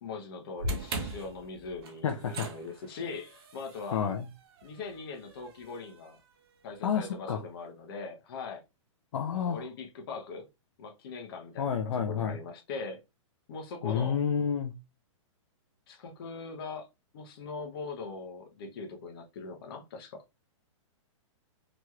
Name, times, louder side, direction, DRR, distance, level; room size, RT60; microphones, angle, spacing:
voice 1, 0.0-4.1 4.6-6.2 6.6-8.6 9.3-10.5 10.8-13.0 13.5-14.2 15.9-16.9 17.1-20.2, left 4 dB, 45° left, 0.8 m, -41 dB
sound 1, 0.6-6.9, right 1 dB, 50° right, 0.7 m, -41 dB
voice 2, 2.0-2.5 3.9-4.3 6.8-7.4 9.1-9.7 11.6-12.4 13.8-14.7, left 7 dB, 70° left, 0.5 m, -30 dB
3.0 x 3.0 x 2.3 m
hypercardioid pair, 165°, 17 cm